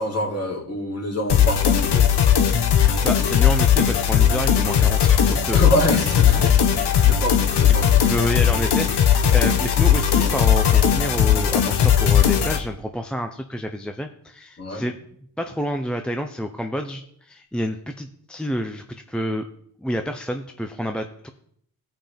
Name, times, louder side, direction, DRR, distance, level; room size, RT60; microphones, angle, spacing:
voice 1, 0.0-2.1 5.5-8.0 14.6-14.8, equal, 35° left, -2 dB, 3.2 m, -26 dB
sound 1, 1.3-12.6, left 9 dB, 70° left, 1.1 m, -18 dB
voice 2, 2.7-5.6 6.4-6.6 7.6-15.0 15.4-19.5 19.8-21.3, equal, ahead, 5 dB, 0.6 m, -29 dB
16.5 x 5.6 x 3.5 m, 0.67 s
cardioid pair, 85°, 42 cm